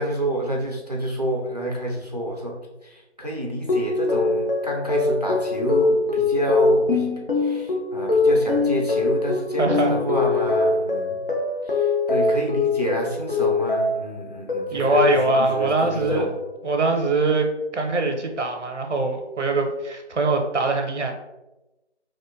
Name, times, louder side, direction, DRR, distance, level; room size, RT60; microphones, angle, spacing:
voice 1, 0.0-7.1 7.4-11.3 11.6-16.4, right 1 dB, 35° right, -1 dB, 0.4 m, -29 dB
sound 1, 3.7-14.1 14.5-15.7 16.1-16.6, left 3 dB, 50° left, 0.6 m, -23 dB
voice 2, 9.6-9.9 14.7-16.3 16.6-17.5 17.7-21.1, right 3 dB, 90° right, 3 dB, 0.6 m, -22 dB
2.8 x 2.1 x 2.5 m, 0.99 s
figure-of-eight pair, 165°, 35 cm